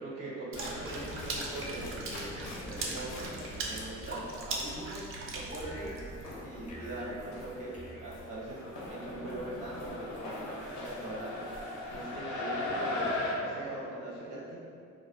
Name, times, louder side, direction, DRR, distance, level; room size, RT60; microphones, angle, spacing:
voice 1, 0.0-3.3 3.6-5.9 6.4-7.7 8.0-13.1 13.4-14.6, right 1 dB, 85° right, -6 dB, 0.8 m, -41 dB
sound 1, 0.5-4.3 5.7-13.3, left 2 dB, 85° left, 0.5 m, -40 dB
Water / Splash splatter, 0.5-6.3, right 2 dB, 45° right, 0.4 m, -39 dB
sound 2, 5.6-9.0, equal, 25° left, 0.4 m, -49 dB
2.3 x 2.1 x 2.5 m, 2.4 s
cardioid pair, 90°, 30 cm